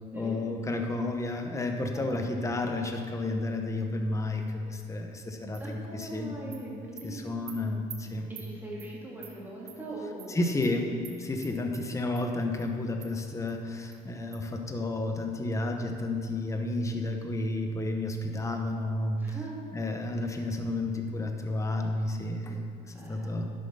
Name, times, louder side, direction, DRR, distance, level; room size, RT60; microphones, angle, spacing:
voice 1, 0.1-6.4 7.0-8.3 10.3-19.2 19.7-23.5, left 2 dB, 20° left, 4 dB, 1.1 m, -31 dB
voice 2, 1.9-2.2 5.4-7.8 8.3-10.6 11.5-11.6 19.2-19.6 22.9-23.5, right 1 dB, 10° right, -5 dB, 2.9 m, -42 dB
Animal, 5.5-5.6 6.0-6.1 6.5-6.6 7.0-7.1 7.5-7.6 7.9-8.0 8.4-8.5 8.8-8.9 9.2-9.3 9.7-9.8 10.2-10.3 10.6-10.7 11.0-11.2 11.4-11.8 12.2-12.3 12.6-12.7 13.0-13.1 13.5-13.6 13.9-14.0 14.3-14.4, right 9 dB, 65° right, 1.4 m, -45 dB
10.5 x 7.7 x 5.7 m, 2.3 s
cardioid pair, 110°, 17 cm